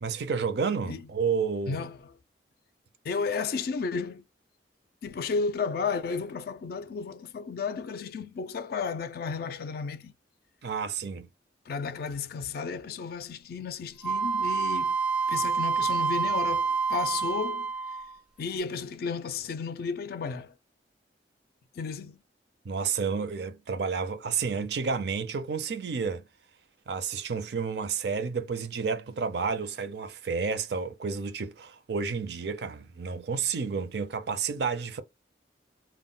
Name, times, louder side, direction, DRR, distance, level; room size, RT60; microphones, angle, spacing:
voice 1, 0.0-1.9 10.6-11.3 22.6-26.2 26.9-35.0, right 5 dB, 65° right, 0.5 m, -30 dB
voice 2, 1.7-2.1 3.0-4.2 5.0-10.1 11.7-15.0 15.3-17.7 18.4-20.5 21.7-22.2, left 5 dB, 60° left, 0.3 m, -33 dB
Wind instrument woodwind instrument, 14.0-18.2, right 5 dB, 5° right, 0.4 m, -28 dB
2.1 x 2.1 x 3.6 m
head